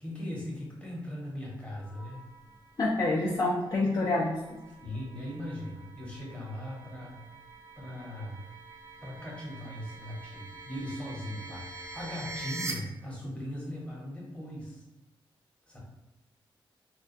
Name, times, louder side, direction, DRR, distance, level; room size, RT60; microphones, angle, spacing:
voice 1, 0.0-2.2 3.0-3.1 4.7-7.2 7.8-8.4 9.0-14.8 15.7-15.8, left 1 dB, 15° left, -5 dB, 0.9 m, -39 dB
sound 1, 1.8-12.7, right 3 dB, 30° right, 0.4 m, -46 dB
voice 2, 2.8-4.4, left 2 dB, 40° left, -6 dB, 0.4 m, -27 dB
2.3 x 2.2 x 2.5 m, 1.0 s
wide cardioid pair, 105°, 9 cm